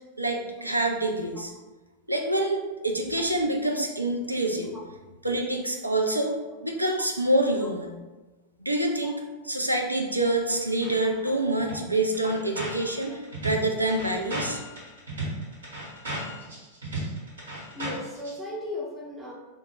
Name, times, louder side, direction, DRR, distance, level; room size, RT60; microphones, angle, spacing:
voice 1, 0.2-1.5 2.1-4.8 5.2-6.4 6.6-7.9 8.6-9.2 9.5-14.6, right 1 dB, 85° right, 2 dB, 0.3 m, -26 dB
sound 1, 10.5-11.0 11.3-11.4 11.6-18.3, right 1 dB, 70° right, 0.9 m, -35 dB
voice 2, 11.0-11.3 11.6-11.8 12.2-12.3 13.1-13.2 17.7-19.3, left 2 dB, 5° right, -4 dB, 0.5 m, -37 dB
2.1 x 2.0 x 3.3 m, 1.2 s
figure-of-eight pair, 90°, 0 cm